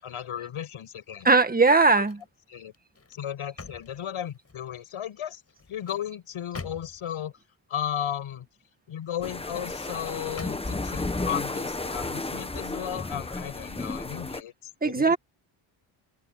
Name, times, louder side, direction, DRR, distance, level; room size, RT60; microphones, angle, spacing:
voice 1, 0.0-1.3 2.0-2.1 2.5-2.7 3.1-5.4 5.7-7.3 7.7-8.5 8.9-15.1, left 10 dB, 80° left, 6.9 m, -35 dB
voice 2, 1.2-2.2 14.8-15.2, right 3 dB, 20° right, 1.8 m, -19 dB
sound 1, 1.6-2.3 2.7-4.7 5.4-7.2 9.0-9.7 10.4-11.0 11.5-11.7, left 4 dB, 30° left, 6.9 m, -46 dB
sound 2, 9.2-14.4, left 2 dB, 10° left, 1.1 m, -33 dB
cardioid pair, 120°, 49 cm